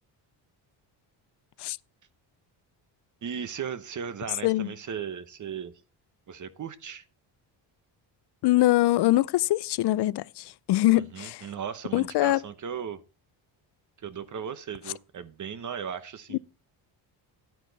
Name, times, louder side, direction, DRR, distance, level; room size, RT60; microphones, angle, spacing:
voice 1, 3.2-5.7 6.3-7.0 10.9-13.0 14.0-16.4, right 7 dB, 40° right, 1.0 m, -37 dB
voice 2, 8.4-11.5 11.9-12.4 16.3-16.4, left 16 dB, 60° left, 0.5 m, -23 dB
10.5 x 9.2 x 4.0 m
cardioid pair, 115°, 45 cm